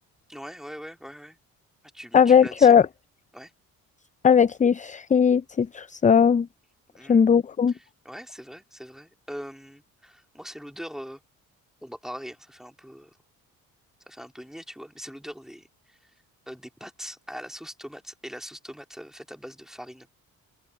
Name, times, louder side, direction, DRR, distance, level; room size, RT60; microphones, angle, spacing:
voice 1, 0.3-1.4 1.9-2.8 3.3-3.5 6.9-7.4 7.7-11.2 11.8-13.2 14.1-16.0 16.5-20.1, equal, ahead, 3.6 m, -41 dB
voice 2, 2.1-2.9 4.2-6.5 7.1-7.7, left 7 dB, 20° left, 0.4 m, -18 dB
supercardioid pair, 70°, 36 cm